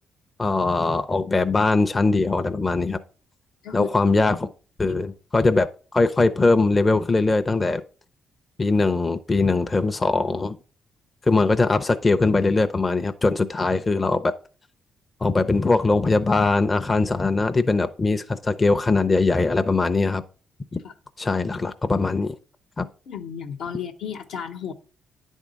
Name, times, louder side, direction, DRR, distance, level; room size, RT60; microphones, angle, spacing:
voice 1, 0.4-3.0 3.7-4.5 4.8-5.7 5.9-7.8 8.6-10.6 11.3-14.3 15.2-20.2 20.7-20.8 21.2-22.3 22.8-22.9, left 3 dB, 25° left, 8 dB, 0.5 m, -21 dB
voice 2, 23.1-24.7, left 8 dB, 80° left, 5 dB, 1.0 m, -33 dB
9.9 x 3.6 x 5.1 m, 0.38 s
cardioid pair, 90°, 0 cm